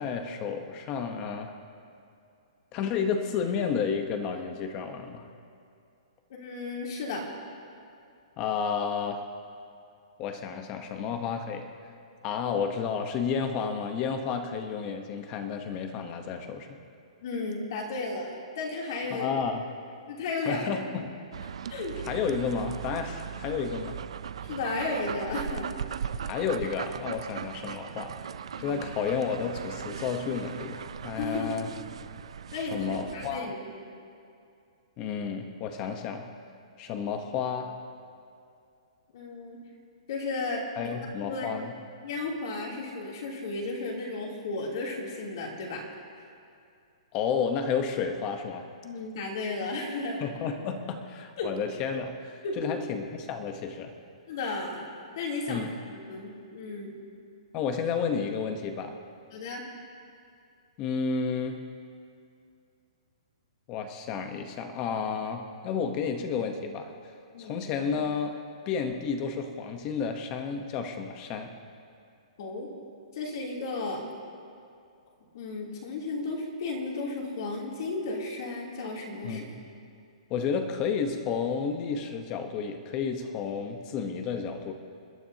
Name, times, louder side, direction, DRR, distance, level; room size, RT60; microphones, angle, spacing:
voice 1, 0.0-1.5 2.7-5.3 8.4-9.2 10.2-11.7 12.2-16.8 19.1-19.7 20.4-21.1 22.1-24.0 26.2-28.2 28.6-31.7 32.6-33.5 35.0-36.3 36.8-37.7 40.8-41.7 47.1-48.7 50.2-53.9 55.5-55.7 57.5-58.9 60.8-61.6 63.7-66.9 67.4-68.4 68.7-71.5 79.2-79.5 80.3-84.7, left 6 dB, 20° left, 6 dB, 0.9 m, -31 dB
voice 2, 6.4-7.3 17.2-19.3 20.1-20.7 21.7-22.0 24.4-25.7 28.6-28.8 31.1-31.5 32.5-33.9 39.1-39.6 40.1-40.9 41.2-41.5 42.0-45.8 48.8-50.2 51.4-51.5 52.4-52.8 54.3-54.9 55.1-57.0 59.3-59.6 67.3-67.6 72.4-72.7 73.1-74.1 75.3-79.4, left 3 dB, 40° left, -2 dB, 2.9 m, -34 dB
sound 1, 21.3-33.4, right 8 dB, 65° right, 0.5 m, -38 dB
28.5 x 12.5 x 2.8 m, 2.5 s
hypercardioid pair, 180°, 3 cm